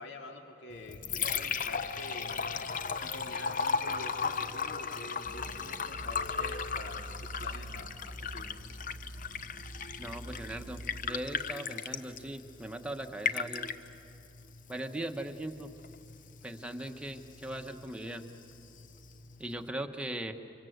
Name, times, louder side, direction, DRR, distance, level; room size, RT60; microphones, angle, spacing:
voice 1, 0.0-2.4 2.7-8.6, left 2 dB, 70° left, 2 dB, 2.5 m, -47 dB
Liquid, 0.7-19.7, left 6 dB, 45° left, 0.8 m, -37 dB
sound 1, 5.2-11.1, right 1 dB, 25° right, 0.8 m, -46 dB
voice 2, 10.0-13.7 14.7-15.7 16.4-18.2 19.4-20.3, right 1 dB, 5° right, 4 dB, 1.1 m, -39 dB
30.0 x 25.0 x 8.0 m, 2.8 s
head